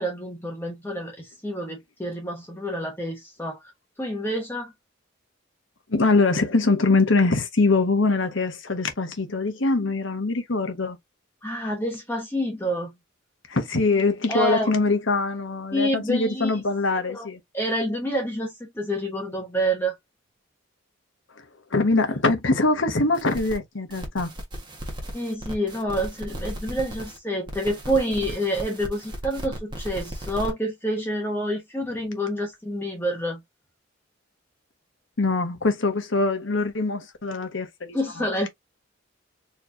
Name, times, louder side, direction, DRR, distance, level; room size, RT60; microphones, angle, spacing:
voice 1, 0.0-3.6 4.0-4.7 11.4-12.9 14.3-14.7 15.7-16.6 17.1-17.3 17.5-19.9 25.1-33.4 37.9-38.5, equal, 10° left, 1.0 m, -28 dB
voice 2, 5.9-11.0 13.5-17.4 21.7-24.3 35.2-38.0, left 3 dB, 65° left, 1.2 m, -23 dB
sound 1, 23.1-23.6 23.9-27.2 27.5-30.5, equal, 20° right, 1.3 m, -36 dB
4.5 x 3.2 x 2.6 m
head